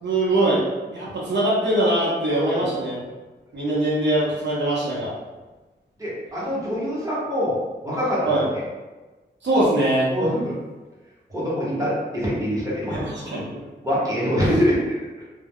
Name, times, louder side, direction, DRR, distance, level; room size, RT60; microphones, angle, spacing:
voice 1, 0.0-3.0 3.5-5.1 8.2-8.5 9.4-10.1 12.9-13.6, right 1 dB, 85° right, -7 dB, 0.8 m, -22 dB
voice 2, 2.3-2.6 4.9-5.0 6.0-8.6 10.1-10.6 11.3-13.4 13.8-15.0, equal, 20° right, -8 dB, 1.0 m, -25 dB
2.2 x 2.1 x 3.5 m, 1.2 s
wide cardioid pair, 110°, 18 cm